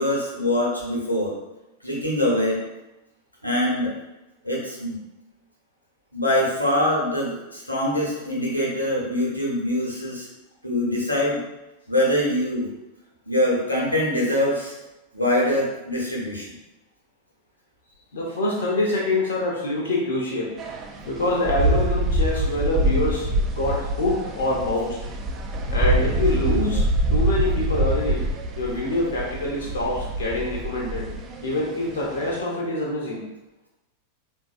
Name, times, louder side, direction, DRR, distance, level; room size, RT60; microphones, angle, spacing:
voice 1, 0.0-1.3 1.8-2.6 3.4-3.9 4.4-5.0 6.1-10.3 10.6-11.4 11.9-12.7 13.3-14.7 15.1-16.5, left 1 dB, 90° left, -4 dB, 0.9 m, -23 dB
voice 2, 18.1-20.5 21.0-25.0 25.7-26.8 27.1-28.3 28.6-31.1 31.4-33.2, left 1 dB, 65° left, -3 dB, 0.6 m, -25 dB
sound 1, 20.6-32.4, right 1 dB, 30° right, 0.4 m, -25 dB
3.8 x 2.6 x 2.4 m, 0.97 s
figure-of-eight pair, 90°, 0 cm